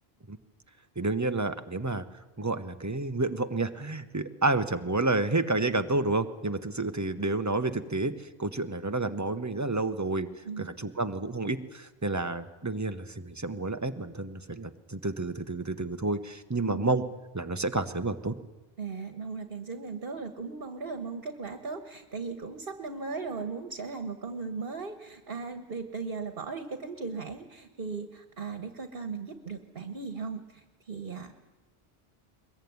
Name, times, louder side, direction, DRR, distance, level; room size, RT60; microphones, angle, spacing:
voice 1, 1.0-2.0 2.4-10.3 10.6-17.0 17.3-18.3, right 2 dB, 15° right, 8 dB, 1.0 m, -30 dB
voice 2, 16.6-16.9 18.8-31.3, right 4 dB, 60° right, 8 dB, 1.5 m, -37 dB
22.0 x 21.5 x 9.6 m, 1.1 s
omnidirectional pair, 1.0 m